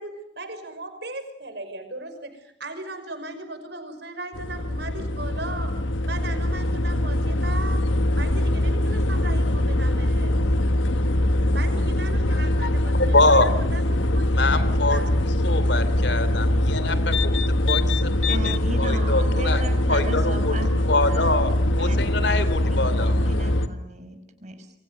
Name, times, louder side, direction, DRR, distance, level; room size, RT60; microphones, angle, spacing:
voice 1, 0.0-5.8 6.1-7.9 8.1-10.4 11.5-14.4 14.8-15.1, right 2 dB, 60° right, 8 dB, 5.9 m, -37 dB
sound 1, 4.3-23.7, left 1 dB, 85° left, 1.3 m, -22 dB
voice 2, 13.0-13.5 14.3-19.6 19.9-20.5 20.9-21.5 21.8-23.2, left 2 dB, 70° left, 13 dB, 3.0 m, -24 dB
voice 3, 18.3-21.4 21.8-22.4 22.7-24.7, right 1 dB, 40° right, 7 dB, 5.6 m, -36 dB
28.0 x 24.0 x 6.7 m, 0.76 s
head